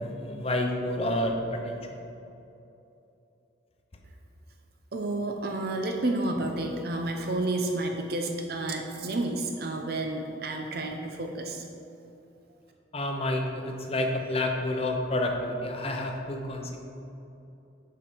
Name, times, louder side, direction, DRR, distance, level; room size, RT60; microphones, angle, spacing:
voice 1, 0.0-1.8 12.9-16.8, left 1 dB, 30° left, 3 dB, 0.7 m, -29 dB
voice 2, 4.9-11.6, right 2 dB, 55° right, 3 dB, 0.6 m, -30 dB
7.2 x 5.7 x 5.1 m, 2.8 s
head